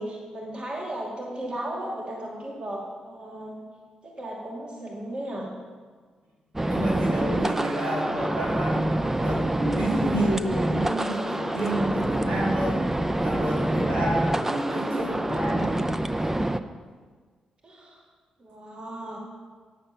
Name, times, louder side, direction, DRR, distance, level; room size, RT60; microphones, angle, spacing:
voice 1, 0.0-3.7 4.0-5.5 17.6-18.0 18.4-19.2, right 1 dB, 45° right, -2 dB, 2.3 m, -35 dB
sound 1, 6.6-16.6, right 1 dB, 15° right, 0.6 m, -26 dB
voice 2, 6.7-8.9 9.2-12.8 13.2-15.9, right 1 dB, 85° right, -6 dB, 3.8 m, -29 dB
10.0 x 7.7 x 6.7 m, 1.5 s
cardioid pair, 60°, 2 cm